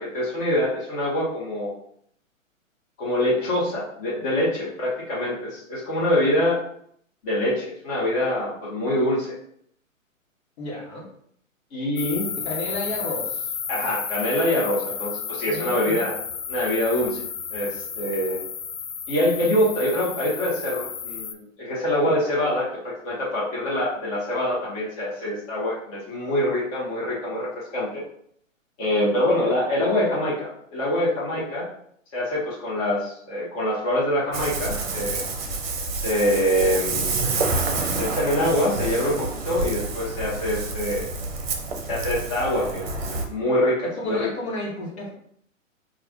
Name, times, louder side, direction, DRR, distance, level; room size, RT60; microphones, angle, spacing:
voice 1, 0.0-1.7 3.0-6.6 7.2-9.3 11.7-12.2 13.7-16.1 16.5-17.2 17.5-18.4 19.1-28.0 28.8-31.6 32.1-35.2 35.9-37.4 38.0-41.1 41.8-44.3, left 1 dB, 25° left, -7 dB, 1.0 m, -25 dB
voice 2, 10.6-11.0 12.4-13.5 14.8-14.9 15.5-16.0 43.8-45.1, left 1 dB, 55° left, -3 dB, 1.2 m, -32 dB
sound 1, 12.0-21.3, left 7 dB, 85° left, 0.5 m, -32 dB
Ocean, 34.3-43.3, right 3 dB, 45° right, 0.7 m, -28 dB
4.6 x 2.4 x 2.3 m, 0.66 s
figure-of-eight pair, 125°, 40 cm